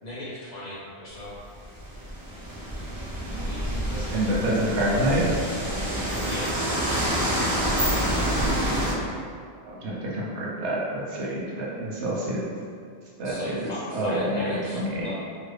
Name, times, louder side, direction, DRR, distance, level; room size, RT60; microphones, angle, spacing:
voice 1, 0.0-1.4 3.3-4.4 5.9-8.3 13.2-15.1, left 1 dB, 45° left, -8 dB, 0.7 m, -39 dB
sound 1, 1.2-8.9, equal, 25° right, 0.5 m, -27 dB
voice 2, 4.1-5.2 9.6-12.4 13.2-13.7 13.9-15.1, right 1 dB, 90° right, -5 dB, 1.0 m, -27 dB
3.2 x 2.4 x 3.2 m, 2.3 s
omnidirectional pair, 1.1 m